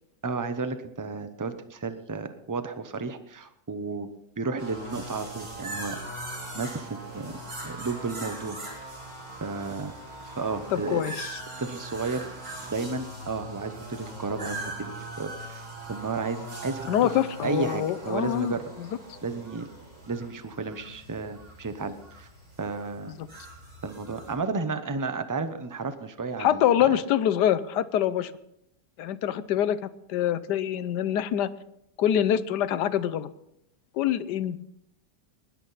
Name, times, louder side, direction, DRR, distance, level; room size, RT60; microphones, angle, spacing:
voice 1, 0.2-4.1 4.4-6.0 6.5-8.9 9.4-10.0 10.2-11.0 11.6-12.3 12.7-16.9 17.4-18.6 19.2-19.7 20.1-22.3 22.6-23.1 23.8-26.9, right 4 dB, 25° right, 10 dB, 0.4 m, -33 dB
sound 1, 4.6-24.3, right 2 dB, 60° right, 4.7 m, -41 dB
voice 2, 10.7-11.4 16.9-18.5 18.8-18.9 23.1-23.3 26.4-28.3 29.0-29.8 30.1-31.5 32.0-33.3 33.9-34.7, left 10 dB, 80° left, 15 dB, 1.3 m, -25 dB
19.5 x 11.0 x 4.1 m, 0.77 s
omnidirectional pair, 1.8 m